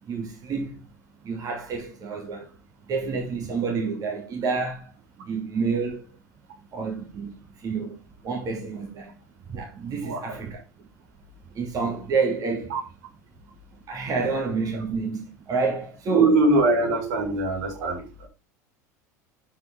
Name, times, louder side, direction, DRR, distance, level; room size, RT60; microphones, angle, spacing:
voice 1, 0.0-0.9 1.2-2.6 2.9-4.9 5.2-6.1 6.7-8.0 8.2-9.2 9.5-10.6 11.5-12.7 13.9-16.4 17.7-17.9, right 4 dB, 40° right, 2.9 m, -29 dB
voice 2, 10.0-10.4 12.7-12.8 16.1-18.3, right 2 dB, 70° right, 4.3 m, -22 dB
12.0 x 5.4 x 3.9 m
hypercardioid pair, 85°, 9 cm